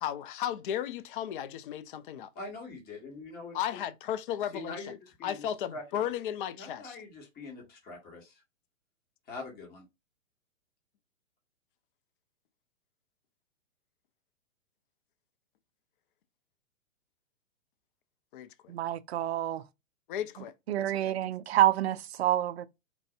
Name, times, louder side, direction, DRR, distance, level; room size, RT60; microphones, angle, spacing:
voice 1, 0.0-2.3 3.5-5.0 5.2-7.0 18.3-18.7 20.1-21.3, left 10 dB, 40° left, 0.5 m, -35 dB
voice 2, 2.3-3.6 4.5-4.9 5.2-5.5 5.7-6.1 6.6-8.4 9.3-9.8, left 3 dB, 25° left, 1.5 m, -43 dB
voice 3, 18.7-19.6 20.7-22.7, right 12 dB, 55° right, 0.5 m, -28 dB
4.6 x 2.6 x 2.5 m
figure-of-eight pair, 115°, 40 cm